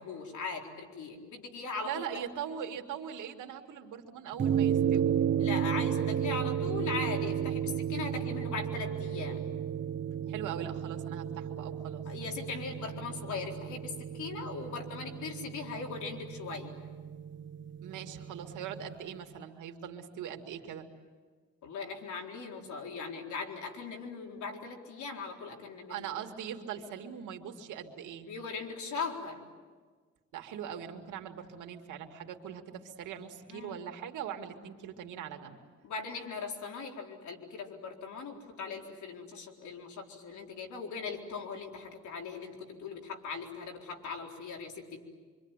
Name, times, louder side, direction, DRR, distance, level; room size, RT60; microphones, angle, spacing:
voice 1, 0.0-2.0 5.4-9.5 12.1-16.7 21.6-26.1 28.3-29.4 33.5-33.8 35.8-45.1, left 4 dB, 75° left, 2 dB, 4.2 m, -39 dB
voice 2, 1.8-5.1 10.3-12.0 17.8-20.9 25.9-28.3 30.3-35.6, right 8 dB, 80° right, 4 dB, 2.4 m, -41 dB
sound 1, 4.4-18.9, right 9 dB, 40° right, 0.7 m, -33 dB
26.0 x 25.0 x 9.1 m, 1.5 s
cardioid pair, 90°, 30 cm